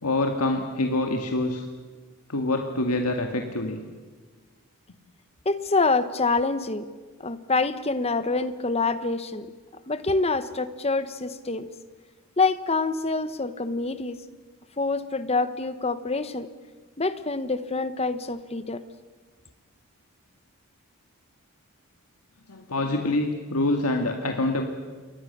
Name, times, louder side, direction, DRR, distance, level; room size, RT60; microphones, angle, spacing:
voice 1, 0.0-1.7 2.3-3.8 22.5-24.7, left 2 dB, 90° left, 4 dB, 2.0 m, -26 dB
voice 2, 5.4-6.9 7.2-9.5 9.9-11.7 12.4-14.2 14.8-16.5 17.0-18.8, left 3 dB, 25° left, 12 dB, 1.1 m, -26 dB
28.0 x 22.5 x 6.8 m, 1.4 s
head